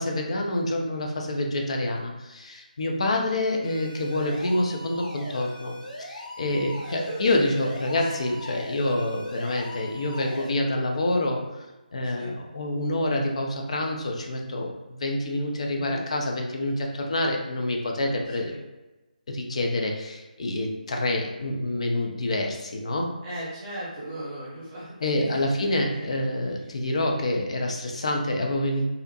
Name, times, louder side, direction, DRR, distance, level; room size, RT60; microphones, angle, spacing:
voice 1, 0.0-5.7 6.0-11.7 11.9-18.5 19.3-23.1 25.0-28.8, left 1 dB, 45° left, 1 dB, 0.4 m, -27 dB
sound 1, 3.6-10.5, left 1 dB, 70° left, 0.7 m, -40 dB
voice 2, 6.8-7.5 8.0-8.2 12.0-12.3 15.7-16.0 18.4-18.6 23.2-26.1 26.6-26.7, right 1 dB, 20° right, -8 dB, 0.7 m, -38 dB
2.5 x 2.1 x 2.7 m, 1.1 s
figure-of-eight pair, 150°, 5 cm